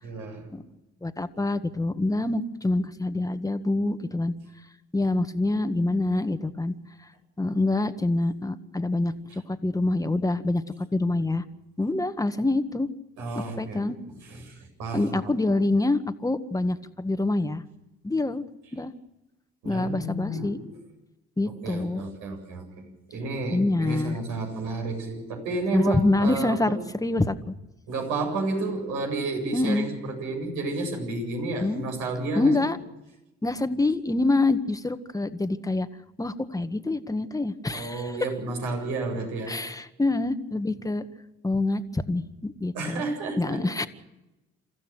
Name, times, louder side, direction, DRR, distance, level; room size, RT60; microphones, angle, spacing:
voice 1, 0.0-0.5 13.2-15.6 18.1-18.2 19.6-20.7 21.5-22.9 23.1-26.8 27.9-32.7 37.7-39.6 42.7-43.6, right 2 dB, 75° right, 3 dB, 7.8 m, -31 dB
voice 2, 1.0-4.3 4.9-6.8 7.4-11.4 11.8-12.9 13.6-14.0 14.9-17.6 18.0-18.4 18.7-18.9 19.6-20.6 21.4-22.0 23.5-24.2 25.7-27.5 29.5-29.9 31.6-31.8 32.4-32.8 33.4-35.9 36.2-38.2 39.5-41.0 41.4-43.0 43.4-43.9, left 2 dB, 10° left, 10 dB, 1.8 m, -26 dB
28.0 x 15.0 x 6.3 m, 0.97 s
hypercardioid pair, 55°, 30 cm